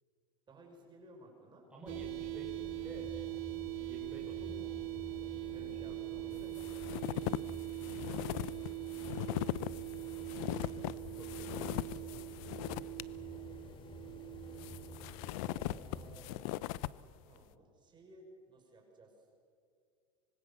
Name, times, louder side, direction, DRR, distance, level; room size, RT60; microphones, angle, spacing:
voice 1, 0.5-1.7 5.5-7.3 10.0-10.9 11.3-12.0 17.3-19.2, right 2 dB, 25° right, 1 dB, 6.0 m, -58 dB
voice 2, 1.7-3.1 3.9-4.7 5.5-5.9 8.1-8.3 10.9-11.9 15.5-16.6, right 1 dB, 5° right, -3 dB, 5.3 m, -52 dB
sound 1, 1.9-16.2, left 1 dB, 25° left, 3.4 m, -50 dB
sound 2, 1.9-15.8, right 22 dB, 70° right, 1.9 m, -43 dB
sound 3, 6.4-13.0 13.4-13.5 14.4-17.0, left 16 dB, 65° left, 0.7 m, -39 dB
25.5 x 24.0 x 7.2 m, 2.3 s
supercardioid pair, 125°, 19 cm